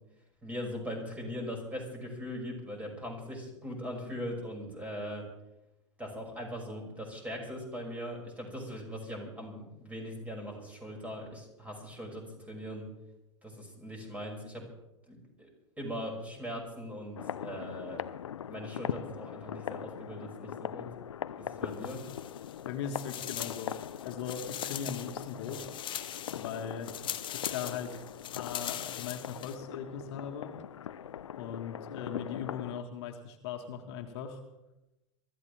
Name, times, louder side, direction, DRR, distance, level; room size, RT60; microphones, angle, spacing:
voice 1, 0.4-5.2 6.0-12.8 13.4-14.6 15.1-15.5 15.8-18.1 18.5-20.9 21.4-22.0, equal, 10° right, 0 dB, 6.2 m, -40 dB
sound 1, 17.2-32.8, left 9 dB, 85° left, 0.6 m, -41 dB
sound 2, 21.7-22.6 22.9-29.6, left 11 dB, 35° left, 1.1 m, -41 dB
voice 2, 22.7-23.7 24.0-25.7 26.3-26.9 27.3-28.0 28.3-30.5 31.4-34.4, left 7 dB, 60° left, 4 dB, 1.8 m, -39 dB
23.5 x 14.0 x 3.5 m, 0.95 s
hypercardioid pair, 95°, 15 cm